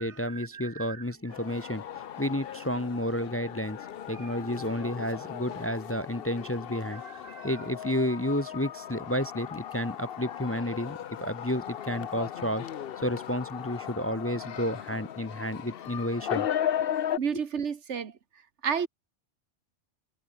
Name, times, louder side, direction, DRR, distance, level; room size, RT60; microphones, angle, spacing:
voice 1, 0.0-3.8 4.1-7.0 7.4-12.7 13.0-16.5, left 1 dB, 15° left, 0.7 m, -31 dB
voice 2, 0.5-1.0 7.2-7.5 17.2-18.1 18.6-18.9, right 7 dB, 85° right, 1.6 m, -31 dB
sound 1, 1.3-17.2, left 10 dB, 60° left, 0.9 m, -36 dB
omnidirectional pair, 1.2 m